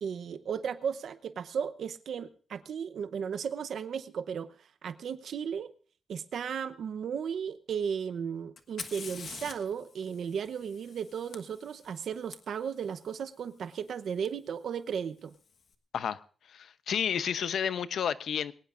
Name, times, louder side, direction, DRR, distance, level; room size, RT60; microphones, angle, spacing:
voice 1, 0.0-4.5 4.8-5.7 6.1-15.3, right 7 dB, 80° right, 13 dB, 0.8 m, -35 dB
Fire, 8.6-12.4 14.3-14.4 15.2-15.6, left 6 dB, 65° left, 1.3 m, -46 dB
voice 2, 16.5-18.5, left 8 dB, 90° left, 13 dB, 0.8 m, -31 dB
21.5 x 19.0 x 2.6 m, 0.42 s
wide cardioid pair, 165°, 0 cm